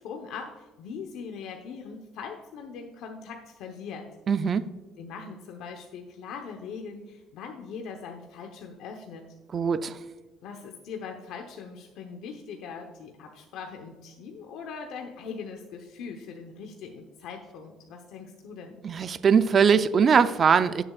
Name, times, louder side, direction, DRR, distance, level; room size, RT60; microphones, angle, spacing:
voice 1, 0.0-4.0 5.0-9.3 10.4-18.8, left 5 dB, 70° left, 3 dB, 0.9 m, -41 dB
voice 2, 4.3-4.6 9.5-10.0 18.8-20.8, right 6 dB, 30° right, 11 dB, 0.4 m, -21 dB
18.0 x 7.0 x 2.4 m, 1.3 s
cardioid pair, 160°, 0 cm